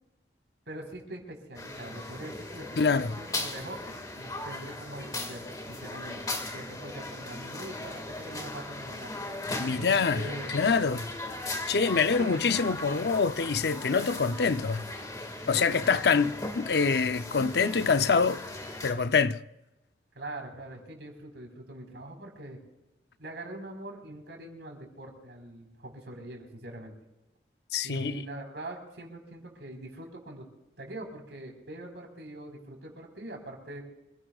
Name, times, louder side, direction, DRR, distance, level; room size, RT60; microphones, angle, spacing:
voice 1, 0.7-6.2 6.5-9.1 9.7-10.5 12.2-12.5 15.5-16.3 20.1-22.6 23.2-26.9 27.8-30.4 30.8-33.8, right 1 dB, 80° right, 4.7 m, -43 dB
sound 1, 1.5-18.9, left 2 dB, 20° left, 2.0 m, -38 dB
voice 2, 2.8-3.2 9.6-10.3 10.5-11.1 11.7-14.8 15.5-18.4 18.8-19.4 27.7-28.2, left 5 dB, 70° left, 0.6 m, -25 dB
27.0 x 17.0 x 2.4 m
head